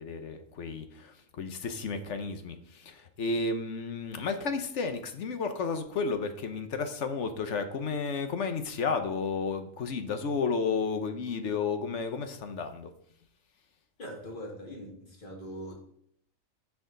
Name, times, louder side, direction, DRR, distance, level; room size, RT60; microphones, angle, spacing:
voice 1, 0.0-12.9, left 4 dB, 60° left, 1.2 m, -32 dB
voice 2, 14.0-15.8, equal, 35° left, 2.3 m, -42 dB
12.5 x 5.0 x 3.9 m
omnidirectional pair, 1.5 m